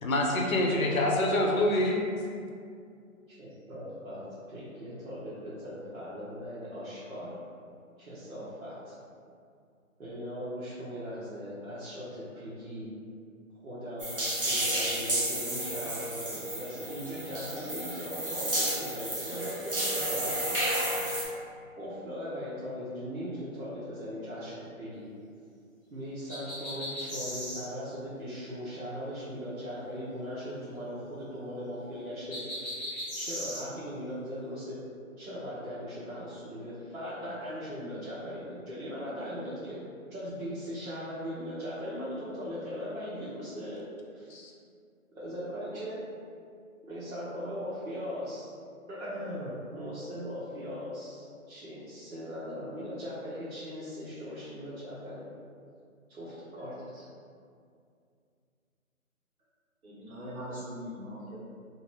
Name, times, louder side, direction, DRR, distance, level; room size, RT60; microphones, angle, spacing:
voice 1, 0.0-2.0 44.3-44.5, left 1 dB, 70° left, 0 dB, 0.7 m, -26 dB
voice 2, 3.4-7.3 8.0-8.9 10.0-12.9 13.6-20.7 21.2-21.3 21.8-25.0 25.9-32.7 33.1-34.7 35.2-39.8 40.1-43.8 44.1-44.3 45.1-46.0 46.8-48.5 48.9-55.2 56.1-57.0, equal, 70° right, -11 dB, 1.0 m, -39 dB
sound 1, 14.0-21.2, right 1 dB, 40° right, 0.6 m, -31 dB
sound 2, 26.3-27.7 32.3-33.6, equal, 10° right, 1.0 m, -37 dB
voice 3, 59.8-61.4, equal, 85° right, -13 dB, 1.4 m, -41 dB
3.1 x 2.9 x 3.0 m, 2.3 s
hypercardioid pair, 180°, 42 cm